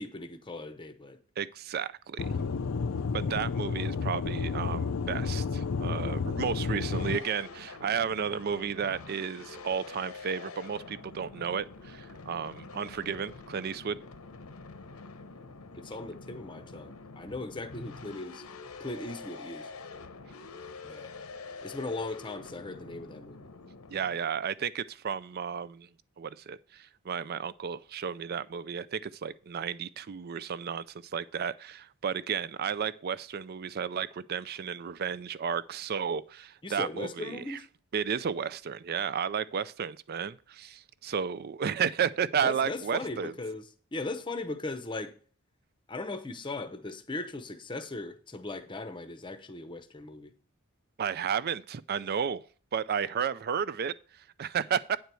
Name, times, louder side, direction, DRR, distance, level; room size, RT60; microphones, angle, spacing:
voice 1, 0.0-1.2 15.7-18.4 18.8-19.7 20.8-21.1 21.6-23.5 36.6-37.6 42.4-45.1 45.9-50.3, left 2 dB, 20° left, 0.7 m, -38 dB
voice 2, 1.4-2.3 3.1-14.0 23.9-25.9 26.2-30.8 31.1-37.6 37.9-43.3 51.0-52.4 52.7-55.0, right 7 dB, 45° right, 0.4 m, -33 dB
Aircraft / Engine, 2.2-7.2, left 5 dB, 65° left, 0.5 m, -31 dB
sound 1, 6.9-24.2, left 4 dB, 80° left, 0.9 m, -46 dB
9.2 x 4.6 x 6.8 m
head